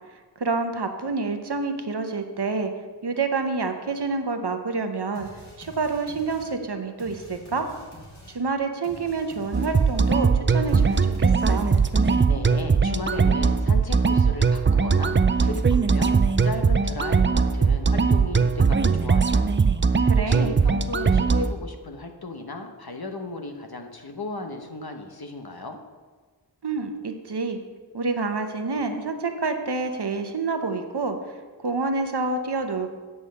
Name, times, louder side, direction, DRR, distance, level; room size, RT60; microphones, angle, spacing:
voice 1, 0.4-2.7 3.0-5.3 5.6-7.7 8.3-11.7 20.0-20.6 26.6-27.6 27.9-31.4 31.6-32.9, right 4 dB, 70° right, 6 dB, 0.9 m, -28 dB
sound 1, 5.1-12.3, left 1 dB, 40° left, 2.4 m, -47 dB
sound 2, 9.5-21.5, right 5 dB, 30° right, 0.4 m, -20 dB
voice 2, 12.3-19.6 20.2-25.8, left 2 dB, 60° left, 5 dB, 1.1 m, -35 dB
8.3 x 5.5 x 6.4 m, 1.4 s
wide cardioid pair, 55°, 42 cm